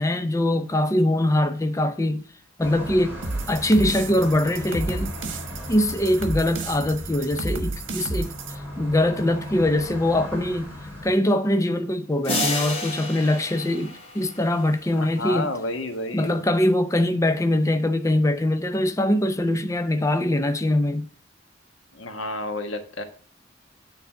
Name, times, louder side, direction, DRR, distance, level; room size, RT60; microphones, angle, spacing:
voice 1, 0.0-2.2 2.6-3.2 3.5-5.1 5.7-8.3 8.8-10.7 11.0-15.5 16.1-21.1, left 1 dB, 15° left, 0.6 m, -22 dB
sound 1, 2.6-11.1, left 1 dB, 10° right, 2.8 m, -37 dB
sound 2, 3.2-8.6, right 3 dB, 80° right, 1.3 m, -32 dB
sound 3, 12.2-14.7, left 2 dB, 30° left, 2.3 m, -30 dB
voice 2, 14.9-16.5 21.9-23.0, left 2 dB, 85° left, 1.4 m, -31 dB
9.3 x 4.0 x 5.6 m
head